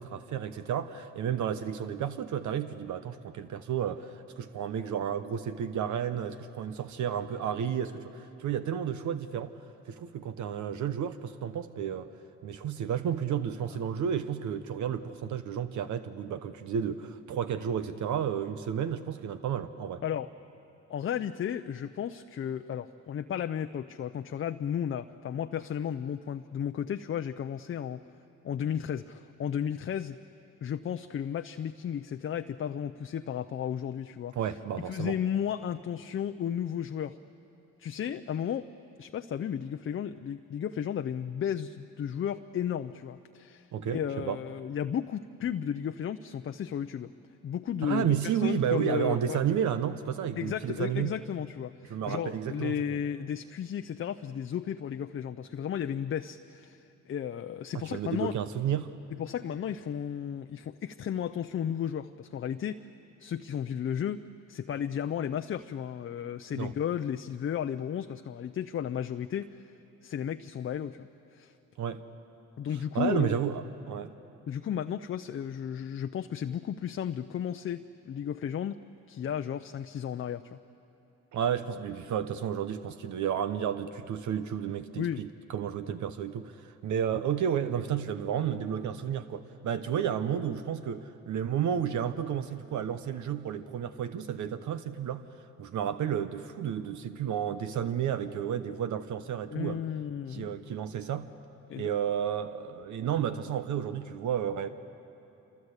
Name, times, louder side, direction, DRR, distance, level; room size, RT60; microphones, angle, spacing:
voice 1, 0.0-9.5 9.9-12.1 12.4-20.0 34.4-35.2 43.7-44.4 47.8-51.2 51.9-52.8 57.9-58.9 66.6-66.7 71.8-72.0 72.9-74.1 81.3-95.3 95.6-99.8 100.3-101.3 101.8-104.7, right 8 dB, 70° right, 11 dB, 1.0 m, -32 dB
voice 2, 20.9-28.1 28.4-30.2 30.6-34.4 34.8-37.2 37.8-38.7 39.0-47.1 47.4-49.4 50.4-58.4 59.2-62.9 63.2-69.7 70.0-71.5 72.6-73.3 74.5-78.8 79.1-80.6 85.0-85.3 99.5-100.5 101.7-101.9, left 9 dB, 45° left, 9 dB, 0.6 m, -34 dB
26.5 x 23.5 x 8.2 m, 2.9 s
cardioid pair, 90°, 30 cm